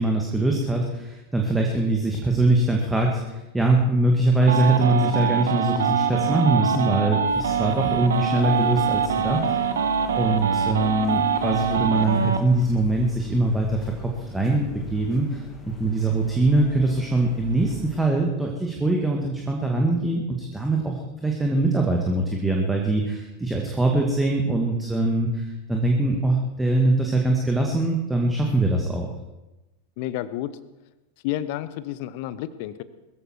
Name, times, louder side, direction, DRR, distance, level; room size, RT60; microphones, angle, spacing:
voice 1, 0.0-9.5 10.1-29.1, right 2 dB, 5° right, 0 dB, 2.0 m, -23 dB
sound 1, 4.4-12.4, right 6 dB, 65° right, 1.3 m, -24 dB
sound 2, 7.3-18.1, left 2 dB, 20° left, 2.4 m, -43 dB
voice 2, 30.0-30.5 31.2-32.8, left 13 dB, 50° left, 15 dB, 1.0 m, -30 dB
21.5 x 14.5 x 4.6 m, 1.0 s
figure-of-eight pair, 90°, 0 cm